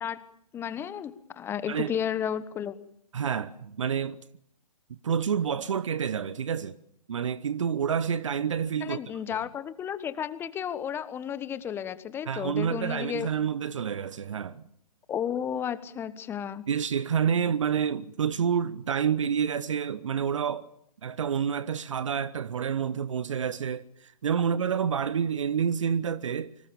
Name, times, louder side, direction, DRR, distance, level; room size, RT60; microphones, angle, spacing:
voice 1, 0.5-2.7 8.8-13.3 15.1-16.6, left 9 dB, 10° left, 1.2 m, -33 dB
voice 2, 3.1-4.2 4.9-6.8 7.1-9.0 9.3-9.4 12.3-14.6 16.7-20.7 21.0-26.5, right 7 dB, 55° right, 1.0 m, -28 dB
27.5 x 25.0 x 7.1 m
figure-of-eight pair, 130°, 19 cm